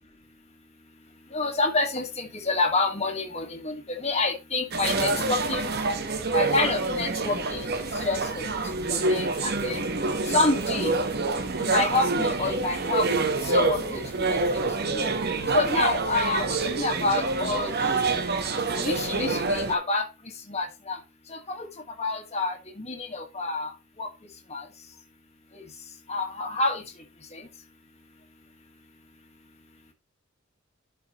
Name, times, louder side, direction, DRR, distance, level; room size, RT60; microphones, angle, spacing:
voice 1, 1.3-5.7 6.3-7.7 8.0-8.5 8.9-9.8 10.3-10.9 11.6-13.1 13.4-14.6 14.9-15.0 15.5-17.7 18.7-20.1 20.5-21.0 21.3-21.7 22.0-23.7 24.0-24.1 24.5-24.6 25.5-25.6 26.1-26.8 27.3-27.4, left 3 dB, 30° left, 2 dB, 1.7 m, -28 dB
sound 1, 4.7-19.7, right 3 dB, 50° right, 1.2 m, -27 dB
11.5 x 5.1 x 3.1 m, 0.25 s
head